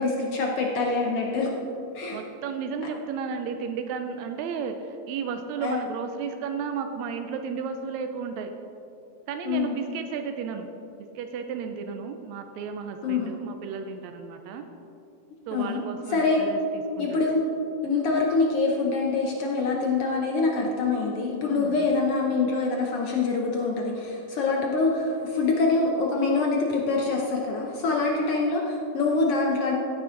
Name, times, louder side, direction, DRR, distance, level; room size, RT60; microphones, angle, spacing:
voice 1, 0.0-1.5 1.9-2.2 5.6-5.8 9.5-9.8 13.0-13.3 15.5-15.8 16.1-16.4 17.0-17.4 17.8-29.8, left 3 dB, 75° left, -1 dB, 1.3 m, -25 dB
voice 2, 2.1-8.5 9.3-10.7 10.9-14.6 15.5-17.2 21.5-21.9, right 6 dB, 85° right, 6 dB, 1.5 m, -33 dB
15.0 x 9.5 x 3.8 m, 2.9 s
omnidirectional pair, 3.9 m